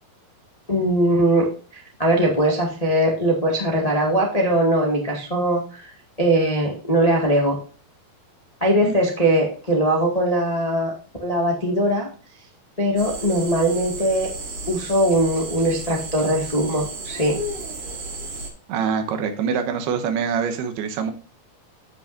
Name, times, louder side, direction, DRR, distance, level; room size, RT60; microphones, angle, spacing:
voice 1, 0.7-1.5 1.7-5.9 6.2-7.5 8.6-10.9 11.2-12.1 12.8-14.3 14.7-17.4, right 1 dB, 35° left, -1 dB, 0.6 m, -20 dB
sound 1, 13.0-18.5, right 2 dB, 60° right, 4.4 m, -33 dB
voice 2, 18.7-21.1, right 6 dB, 85° right, 6 dB, 3.1 m, -24 dB
14.5 x 6.0 x 2.6 m, 0.37 s
omnidirectional pair, 4.4 m